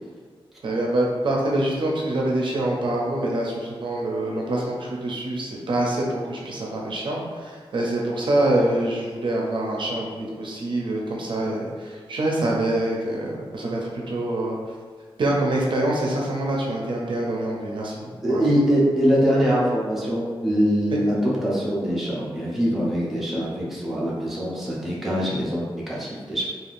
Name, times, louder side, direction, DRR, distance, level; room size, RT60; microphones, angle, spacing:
voice 1, 0.6-14.6 15.2-18.4 20.9-21.0, right 1 dB, 55° right, -3 dB, 0.5 m, -25 dB
voice 2, 18.2-26.5, equal, ahead, -7 dB, 0.5 m, -23 dB
3.3 x 2.3 x 2.5 m, 1.6 s
wide cardioid pair, 170°, 10 cm